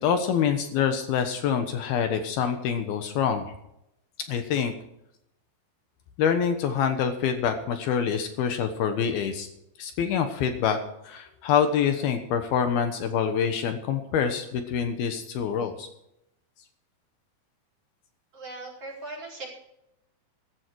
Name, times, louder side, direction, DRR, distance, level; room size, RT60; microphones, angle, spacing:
voice 1, 0.0-3.5 4.3-4.7 6.2-9.5 9.8-10.8 11.0-15.9, left 7 dB, 70° left, 7 dB, 2.9 m, -26 dB
voice 2, 18.3-19.5, right 2 dB, 35° right, -3 dB, 5.5 m, -39 dB
15.0 x 14.5 x 4.7 m, 0.80 s
omnidirectional pair, 4.8 m